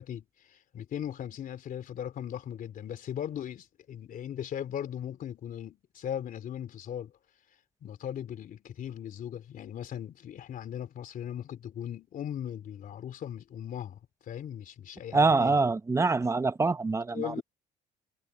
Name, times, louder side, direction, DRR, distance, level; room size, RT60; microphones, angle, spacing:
voice 1, 0.0-7.1 7.8-15.5 17.1-17.4, left 10 dB, 55° left, 3.2 m, -38 dB
voice 2, 15.1-17.4, right 3 dB, 15° right, 0.9 m, -25 dB
cardioid pair, 110°, 17 cm